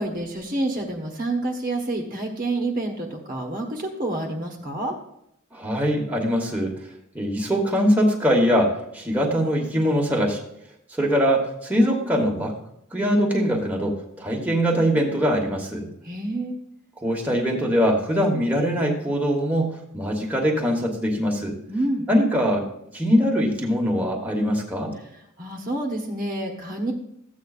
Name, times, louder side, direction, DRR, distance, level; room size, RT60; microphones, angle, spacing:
voice 1, 0.0-5.0 16.0-16.6 21.7-22.1 25.0-26.9, right 2 dB, 40° right, 2 dB, 1.1 m, -28 dB
voice 2, 5.5-6.7 7.1-10.4 10.9-12.5 12.9-15.9 17.0-21.5 22.1-22.7 22.9-24.9, equal, 5° right, -1 dB, 1.2 m, -22 dB
14.0 x 8.3 x 2.4 m, 0.77 s
head